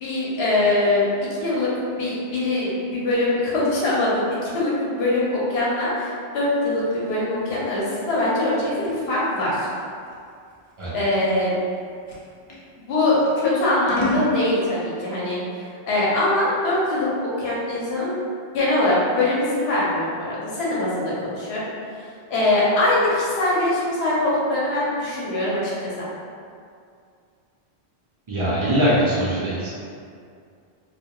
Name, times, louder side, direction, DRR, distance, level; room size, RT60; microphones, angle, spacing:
voice 1, 0.0-1.0 1.4-1.7 2.0-9.7 10.9-11.5 12.9-18.1 18.5-21.7 21.9-26.1, left 2 dB, 75° left, -7 dB, 0.9 m, -22 dB
Scissors, 6.5-12.7 13.2-14.3, right 1 dB, 50° left, 0.4 m, -33 dB
voice 2, 28.3-29.7, equal, 50° right, -8 dB, 0.3 m, -21 dB
2.2 x 2.2 x 2.8 m, 2.3 s
omnidirectional pair, 1.1 m